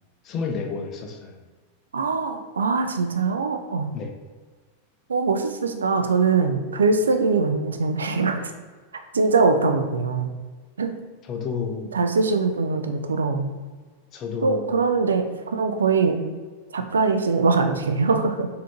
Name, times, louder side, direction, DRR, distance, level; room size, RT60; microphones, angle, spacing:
voice 1, 0.2-1.4 3.9-4.1 11.2-11.9 14.1-14.7, left 5 dB, 35° left, 4 dB, 0.5 m, -30 dB
voice 2, 1.9-3.9 5.1-8.5 9.1-10.3 10.8-10.9 11.9-13.6 14.4-16.2 16.7-18.5, right 4 dB, 70° right, 6 dB, 0.3 m, -22 dB
4.1 x 2.7 x 2.9 m, 1.4 s
figure-of-eight pair, 90°, 0 cm